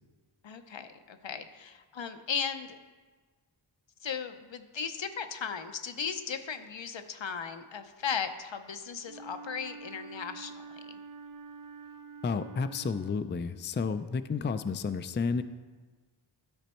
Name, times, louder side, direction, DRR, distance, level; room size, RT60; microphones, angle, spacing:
voice 1, 0.4-2.8 4.0-11.0, left 6 dB, 70° left, 8 dB, 0.8 m, -37 dB
Wind instrument woodwind instrument, 9.0-13.8, right 4 dB, 45° right, 0.6 m, -47 dB
voice 2, 12.2-15.4, left 5 dB, 25° left, 11 dB, 0.4 m, -31 dB
12.5 x 5.2 x 4.4 m, 1.4 s
wide cardioid pair, 45°, 47 cm